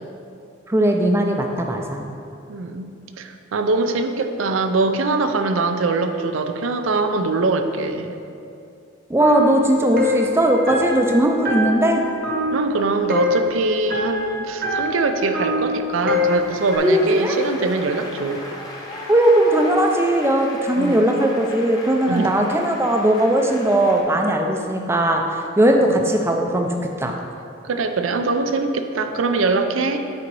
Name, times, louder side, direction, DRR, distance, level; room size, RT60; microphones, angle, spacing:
voice 1, 0.7-2.1 9.1-12.0 16.8-17.4 19.1-27.1, right 1 dB, 15° right, 2 dB, 0.4 m, -18 dB
voice 2, 2.5-2.9 3.2-8.1 12.5-18.4 20.8-21.0 22.1-22.3 27.6-30.0, right 3 dB, 90° right, 7 dB, 0.5 m, -22 dB
sound 1, 9.2-16.8, left 2 dB, 50° right, 0.9 m, -25 dB
Applause, 16.1-24.0, left 1 dB, 20° left, 1.0 m, -36 dB
8.6 x 4.0 x 4.7 m, 2.6 s
head